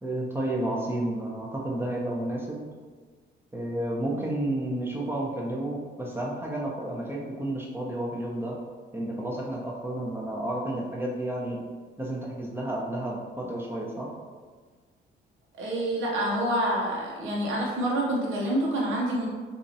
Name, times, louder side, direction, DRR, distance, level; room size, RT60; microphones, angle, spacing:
voice 1, 0.0-2.6 3.5-8.6 8.9-11.6 12.0-14.1, right 1 dB, 10° right, -3 dB, 0.9 m, -31 dB
voice 2, 15.6-19.3, right 1 dB, 80° right, -3 dB, 1.0 m, -27 dB
2.9 x 2.6 x 4.1 m, 1.5 s
cardioid pair, 90°, 20 cm